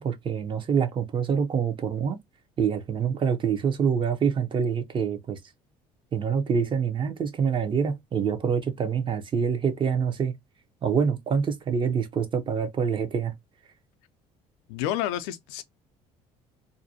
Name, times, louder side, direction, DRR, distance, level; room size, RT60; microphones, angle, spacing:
voice 1, 0.0-2.2 2.6-5.4 6.1-10.3 10.8-13.3, right 6 dB, 35° right, 0.6 m, -26 dB
voice 2, 14.7-15.6, left 12 dB, 90° left, 0.4 m, -29 dB
2.5 x 2.1 x 2.6 m
supercardioid pair, 85°, 14 cm